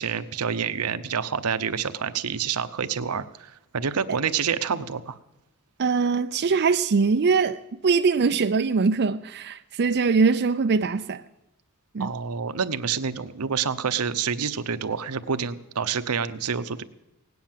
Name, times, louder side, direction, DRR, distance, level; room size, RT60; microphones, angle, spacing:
voice 1, 0.0-5.2 12.0-16.8, right 6 dB, 80° right, 0.8 m, -28 dB
voice 2, 5.8-11.2 11.9-12.1, right 4 dB, 50° right, 0.5 m, -22 dB
17.5 x 9.4 x 7.4 m
head